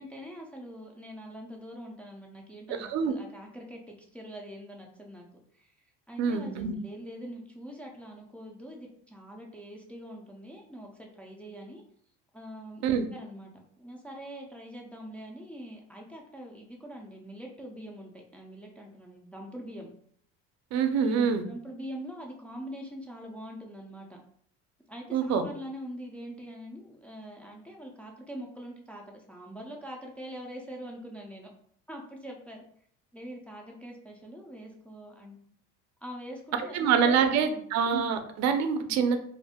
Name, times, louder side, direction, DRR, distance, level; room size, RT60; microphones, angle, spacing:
voice 1, 0.0-5.3 5.5-5.7 6.1-11.8 12.3-12.8 13.1-13.5 13.8-19.9 21.0-24.2 24.9-31.5 31.9-32.6 33.1-35.4 36.0-36.8 37.0-37.6 38.8-39.0, equal, 5° left, -1 dB, 0.3 m, -43 dB
voice 2, 2.7-3.1 6.2-6.7 12.8-13.1 20.7-21.4 25.1-25.4 36.6-39.2, right 6 dB, 60° right, 8 dB, 0.5 m, -26 dB
2.5 x 2.1 x 3.4 m, 0.63 s
cardioid pair, 130°, 31 cm